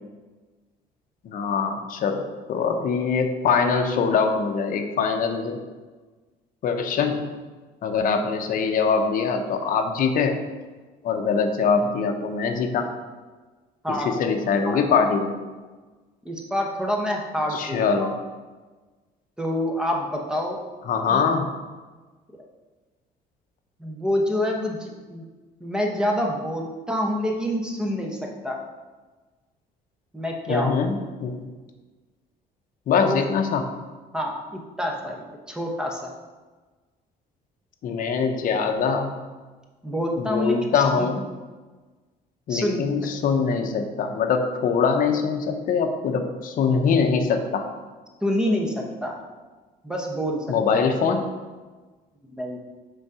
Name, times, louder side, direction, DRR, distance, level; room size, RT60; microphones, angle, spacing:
voice 1, 1.2-5.6 6.6-7.3 7.8-10.4 11.0-12.9 13.9-15.3 17.5-18.1 20.9-21.5 30.5-31.4 32.9-33.7 37.8-39.2 40.2-41.2 42.5-47.7 50.5-51.2, left 5 dB, 55° left, 5 dB, 0.7 m, -23 dB
voice 2, 16.2-18.1 19.4-20.6 21.1-21.2 23.8-25.2 25.6-28.6 30.1-30.7 33.0-33.2 34.1-36.1 39.8-41.1 42.5-42.8 48.2-49.1 49.8-50.5 50.7-50.8 52.4-52.6, equal, 5° right, 0 dB, 0.9 m, -27 dB
5.3 x 3.9 x 4.7 m, 1.3 s
cardioid pair, 110°, 17 cm